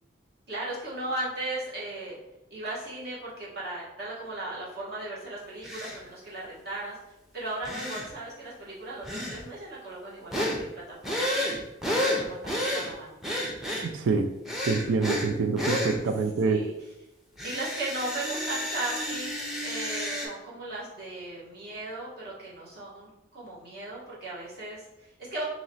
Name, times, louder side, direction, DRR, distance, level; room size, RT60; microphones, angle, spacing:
voice 1, 0.5-2.2 2.5-7.0 7.3-10.7 11.0-11.7 12.0-13.2 16.2-16.9 17.4-25.4, right 2 dB, 55° right, -6 dB, 1.3 m, -37 dB
sound 1, 5.6-6.0 7.6-8.1 9.0-9.4 10.3-10.6 11.0-12.9 13.2-13.9 14.4-15.3 15.6-16.0 17.4-20.3, left 1 dB, ahead, 0.6 m, -30 dB
voice 2, 13.9-14.3 14.7-16.6, right 4 dB, 80° right, 7 dB, 0.4 m, -26 dB
3.0 x 2.9 x 4.1 m, 0.95 s
head